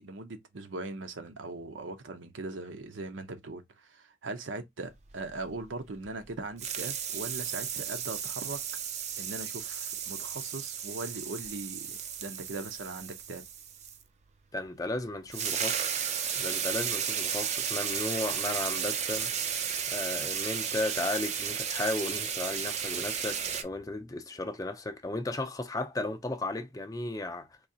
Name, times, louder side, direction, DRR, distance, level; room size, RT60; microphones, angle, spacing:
voice 1, 0.0-8.6 9.2-13.5, right 3 dB, 85° right, 0.7 m, -40 dB
sound 1, 5.1-6.3 6.6-14.0 15.0-15.1 15.3-23.6, right 8 dB, 35° right, 0.4 m, -34 dB
voice 2, 14.5-19.3 19.9-27.6, left 2 dB, 20° left, 0.5 m, -35 dB
3.9 x 2.8 x 2.7 m
head